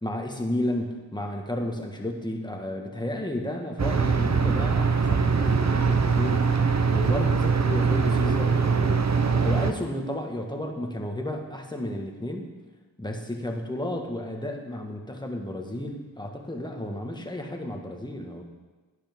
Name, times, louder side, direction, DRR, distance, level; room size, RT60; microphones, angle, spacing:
voice 1, 0.0-6.6 6.9-12.5 13.0-18.4, left 1 dB, 10° left, 2 dB, 1.6 m, -32 dB
sound 1, 3.8-9.7, right 5 dB, 35° right, 0.9 m, -22 dB
11.5 x 10.0 x 3.7 m, 1.3 s
cardioid pair, 45°, 49 cm